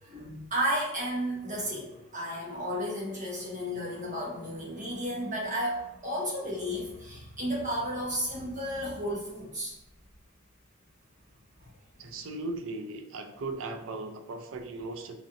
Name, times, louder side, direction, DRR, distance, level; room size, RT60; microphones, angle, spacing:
voice 1, 0.0-9.7, equal, 35° right, -4 dB, 1.1 m, -33 dB
voice 2, 12.0-15.2, right 2 dB, 70° right, 5 dB, 0.5 m, -37 dB
5.2 x 2.8 x 2.5 m, 0.90 s
head